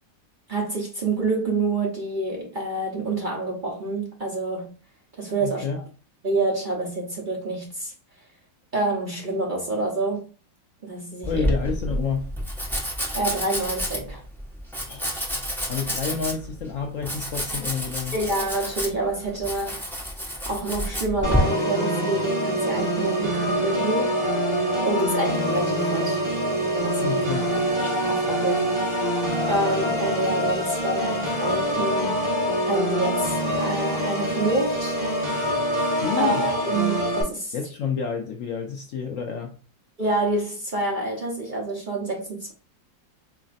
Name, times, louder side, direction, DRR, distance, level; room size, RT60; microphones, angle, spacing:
voice 1, 0.5-4.7 5.2-5.7 6.2-7.9 8.7-10.3 10.8-11.5 13.1-14.2 18.1-19.9 20.5-24.2 24.8-26.2 26.8-27.2 27.8-28.8 29.5-32.2 32.6-35.0 36.2-37.5 40.0-42.5, right 2 dB, 45° right, 0.6 m, -27 dB
voice 2, 5.4-5.8 11.2-12.3 14.9-15.1 15.7-18.2 27.0-27.5 36.0-36.5 37.5-39.5, left 6 dB, 70° left, 0.7 m, -29 dB
Domestic sounds home sounds, 11.2-21.4, equal, 5° left, 0.4 m, -30 dB
Organ, 21.2-37.2, equal, 25° right, 1.2 m, -25 dB
4.1 x 3.2 x 2.5 m
omnidirectional pair, 2.0 m